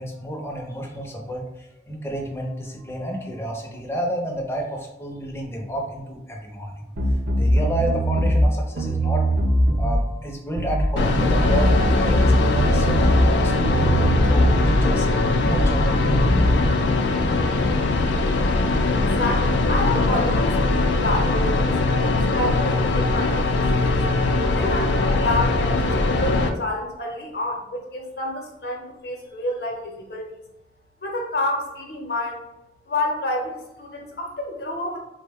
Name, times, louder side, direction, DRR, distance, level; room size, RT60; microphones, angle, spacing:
voice 1, 0.0-1.4 1.9-6.9 7.3-9.3 9.7-15.1 15.5-16.4, equal, 15° left, 0 dB, 0.5 m, -30 dB
sound 1, 7.0-8.5 8.8-10.0 10.6-10.9 11.2-13.3 13.6-14.8 15.4-15.7 16.0-16.6, equal, 70° right, 0.6 m, -21 dB
sound 2, 11.0-26.5, left 2 dB, 80° left, 0.4 m, -21 dB
voice 2, 19.0-24.0 24.5-30.3 31.0-32.4 32.9-35.0, left 2 dB, 60° left, 1 dB, 0.7 m, -29 dB
3.6 x 2.1 x 3.4 m, 0.93 s
head